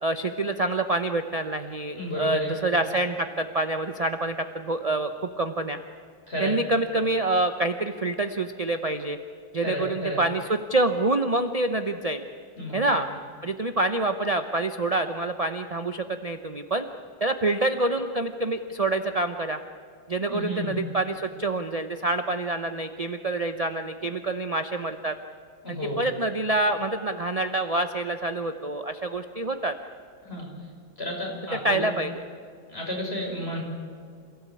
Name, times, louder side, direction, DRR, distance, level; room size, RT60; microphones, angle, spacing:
voice 1, 0.0-5.1 5.4-5.8 6.4-9.2 9.5-12.3 12.7-13.1 13.4-16.8 17.2-19.6 20.1-25.1 25.7-29.7 31.5-32.2, right 2 dB, 40° right, 7 dB, 0.5 m, -27 dB
voice 2, 2.0-2.5 6.3-6.5 9.6-10.2 12.6-12.8 20.3-20.8 25.6-26.0 30.2-30.5 31.0-31.9 32.7-33.6, left 1 dB, 30° left, -1 dB, 6.3 m, -31 dB
28.0 x 16.5 x 8.5 m, 2.2 s
omnidirectional pair, 2.1 m